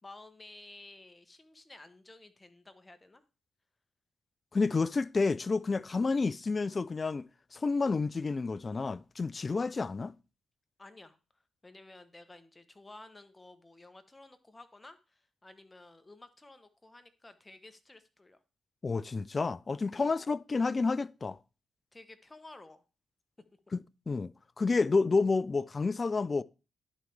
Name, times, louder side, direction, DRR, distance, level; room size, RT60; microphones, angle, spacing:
voice 1, 0.0-3.2 10.8-18.4 19.9-20.1 21.9-22.8, left 2 dB, 20° left, 1.1 m, -53 dB
voice 2, 4.5-10.1 18.8-21.4 23.7-23.8 24.1-26.4, left 4 dB, 40° left, 0.3 m, -30 dB
11.0 x 4.5 x 3.5 m
supercardioid pair, 60°, 0 cm